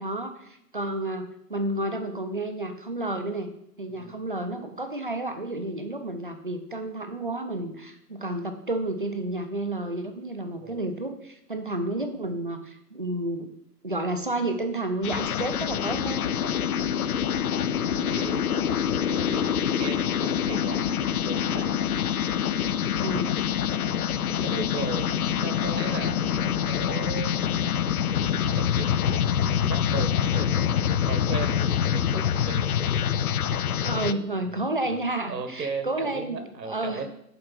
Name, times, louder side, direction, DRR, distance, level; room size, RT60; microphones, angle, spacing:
voice 1, 0.0-3.5 3.8-13.5 13.8-16.2 17.9-18.3 23.0-23.4 33.8-37.1, right 2 dB, 35° right, 7 dB, 0.5 m, -31 dB
voice 2, 3.9-4.2 10.6-10.9 15.4-15.5 16.3-16.5 17.7-21.7 22.9-23.3 24.1-27.5 28.4-32.6 33.4-33.6 34.0-34.2 34.5-37.1, right 4 dB, 80° right, 8 dB, 1.6 m, -37 dB
sound 1, 15.0-34.1, left 9 dB, 60° left, 0.5 m, -26 dB
7.8 x 4.7 x 5.8 m, 0.78 s
hypercardioid pair, 175°, 49 cm